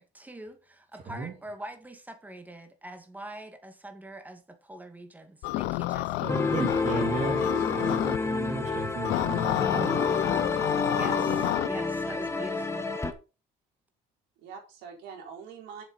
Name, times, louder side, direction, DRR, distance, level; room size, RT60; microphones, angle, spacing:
voice 1, 0.0-6.4 10.9-12.9, right 1 dB, 10° right, 2.0 m, -44 dB
sound 1, 5.4-8.2 9.0-11.7, left 17 dB, 90° left, 0.6 m, -29 dB
voice 2, 6.2-7.4 7.7-10.0, right 3 dB, 45° right, 2.9 m, -35 dB
sound 2, 6.3-13.1, left 3 dB, 15° left, 1.6 m, -29 dB
voice 3, 6.9-8.2 14.4-15.8, right 6 dB, 90° right, 4.1 m, -45 dB
7.3 x 7.3 x 5.2 m
cardioid pair, 110°, 17 cm